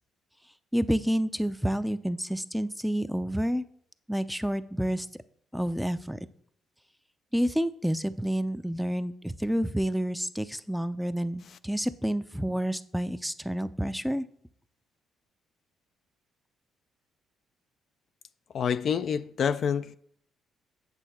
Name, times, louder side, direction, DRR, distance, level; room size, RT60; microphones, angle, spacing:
voice 1, 0.7-3.6 4.1-5.1 5.5-6.2 7.3-14.2, equal, ahead, 0.5 m, -29 dB
voice 2, 18.5-20.0, left 7 dB, 60° left, 0.4 m, -27 dB
8.2 x 6.3 x 4.3 m
supercardioid pair, 60°, 0 cm